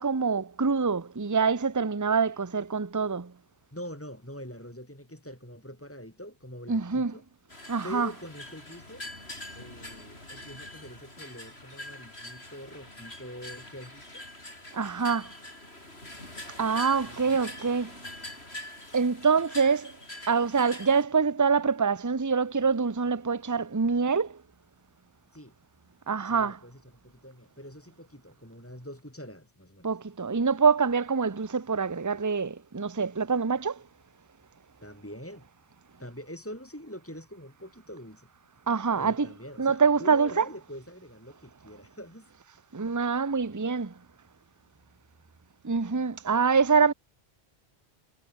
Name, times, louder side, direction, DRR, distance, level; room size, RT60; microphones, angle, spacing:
voice 1, 0.0-3.3 6.7-7.1 7.7-8.1 14.7-15.3 16.6-18.0 18.9-20.0 20.3-24.4 26.1-26.6 29.8-33.8 38.7-39.3 39.6-40.5 42.7-44.0 45.6-46.9, right 5 dB, 20° right, 0.8 m, -25 dB
voice 2, 3.7-7.2 7.8-9.0 9.5-14.2 17.0-17.8 25.3-25.5 26.2-29.9 34.8-35.5 36.0-38.3 39.0-42.3, equal, 10° left, 5.0 m, -44 dB
sound 1, 7.5-21.0, left 1 dB, 90° left, 7.7 m, -44 dB
omnidirectional pair, 1.0 m